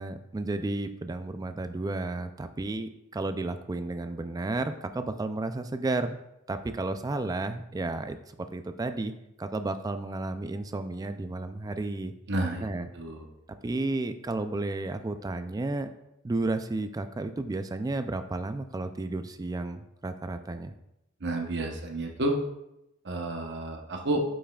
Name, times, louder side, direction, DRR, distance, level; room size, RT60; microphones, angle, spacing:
voice 1, 0.0-6.2 6.5-9.1 9.4-12.1 12.6-12.9 13.6-15.9 16.2-20.7, right 2 dB, 15° right, 9 dB, 0.3 m, -32 dB
voice 2, 12.3-12.7 12.9-13.2 21.2-22.4 23.0-24.2, right 2 dB, 50° right, 2 dB, 0.9 m, -30 dB
8.4 x 5.5 x 2.3 m, 0.87 s
head